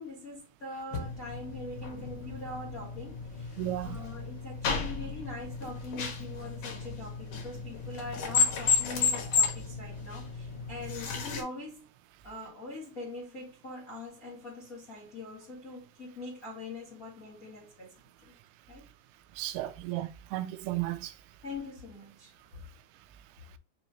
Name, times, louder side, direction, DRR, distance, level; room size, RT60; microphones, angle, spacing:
voice 1, 0.0-3.6 3.8-11.9 12.2-17.9 18.2-18.3 18.7-18.9 21.4-22.3, left 2 dB, 50° left, 1.0 m, -43 dB
sound 1, 0.9-11.4, left 5 dB, 70° left, 1.4 m, -33 dB
voice 2, 3.6-4.0 19.4-21.1, right 15 dB, 85° right, 2.5 m, -34 dB
6.0 x 2.8 x 2.8 m
omnidirectional pair, 4.5 m